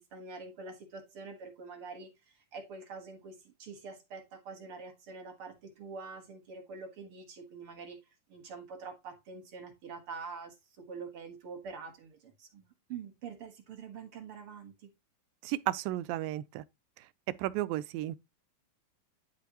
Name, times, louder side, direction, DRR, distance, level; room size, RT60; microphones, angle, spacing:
voice 1, 0.0-8.0 8.3-14.9, right 4 dB, 50° right, 2.0 m, -45 dB
voice 2, 15.4-16.6 17.0-17.1 17.4-18.2, right 15 dB, 90° right, 2.3 m, -33 dB
11.0 x 5.2 x 2.9 m
omnidirectional pair, 4.0 m